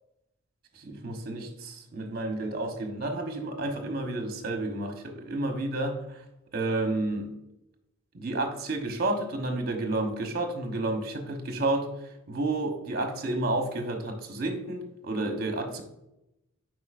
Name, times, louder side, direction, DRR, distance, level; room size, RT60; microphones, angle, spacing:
voice 1, 0.8-6.2 6.5-7.3 8.1-11.9 12.3-15.8, right 2 dB, 45° right, 4 dB, 1.0 m, -31 dB
7.7 x 4.9 x 2.5 m, 0.87 s
head